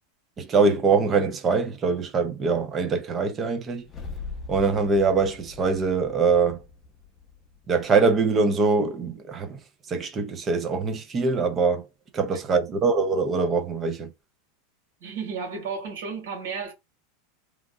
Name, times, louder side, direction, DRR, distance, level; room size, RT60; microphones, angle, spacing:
voice 1, 0.4-3.8 4.5-6.6 7.7-9.6 9.9-11.8 12.1-14.1, right 4 dB, 25° right, 0.6 m, -23 dB
sound 1, 3.8-8.1, left 4 dB, 25° left, 0.7 m, -41 dB
voice 2, 15.0-16.7, right 5 dB, 75° right, 1.7 m, -33 dB
3.1 x 2.5 x 2.3 m
supercardioid pair, 135°, 0 cm